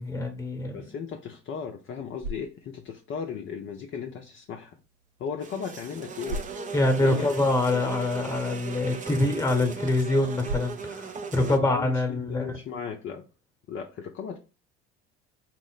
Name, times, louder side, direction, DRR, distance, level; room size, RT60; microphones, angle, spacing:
voice 1, 0.0-0.8 6.7-12.5, left 2 dB, 10° left, 1.0 m, -25 dB
voice 2, 0.7-4.8 5.2-6.4 7.0-7.3 11.3-13.3 13.7-14.4, left 6 dB, 40° left, 0.6 m, -36 dB
sound 1, 1.8-12.9, right 1 dB, 70° right, 0.8 m, -44 dB
sound 2, 5.4-11.6, right 5 dB, 25° right, 0.5 m, -37 dB
4.3 x 2.0 x 3.8 m
hypercardioid pair, 70°, 33 cm